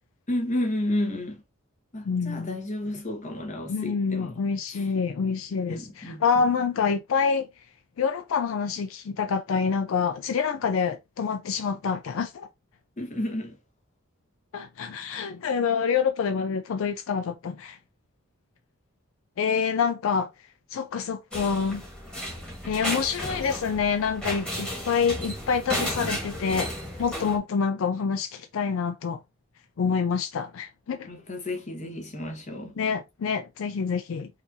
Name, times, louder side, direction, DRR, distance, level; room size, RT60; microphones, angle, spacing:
voice 1, 0.3-1.4 1.9-4.4 4.7-4.9 5.7-6.4 13.0-13.6 31.1-32.8, left 1 dB, 35° left, 1.3 m, -31 dB
voice 2, 2.1-2.6 3.7-7.5 8.0-12.5 14.5-17.8 19.4-20.3 20.7-21.8 22.6-26.7 27.0-29.2 29.8-31.1 32.8-34.3, left 6 dB, 70° left, 0.4 m, -27 dB
sound 1, 21.3-27.4, equal, 5° left, 1.6 m, -33 dB
4.8 x 2.7 x 2.7 m
head